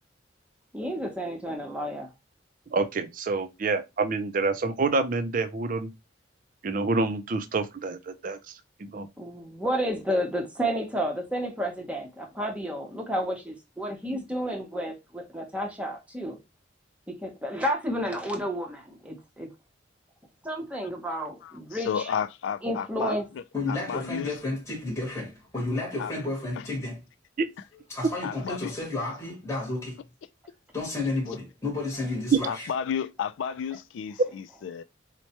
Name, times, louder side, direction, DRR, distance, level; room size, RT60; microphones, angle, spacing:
voice 1, 0.7-2.1 9.2-16.4 17.1-19.5 20.4-21.9 22.6-23.3, equal, 5° right, 0.8 m, -31 dB
voice 2, 2.7-5.9 6.6-8.4 8.8-9.1 27.4-27.5 32.3-32.4, right 4 dB, 45° right, 0.5 m, -27 dB
voice 3, 21.4-24.4 26.0-26.1 26.6-26.7 28.2-28.7 32.5-34.8, left 7 dB, 85° left, 0.3 m, -32 dB
voice 4, 23.5-27.0 27.9-30.0 30.7-32.7, left 2 dB, 15° left, 1.1 m, -31 dB
4.4 x 2.1 x 2.9 m
head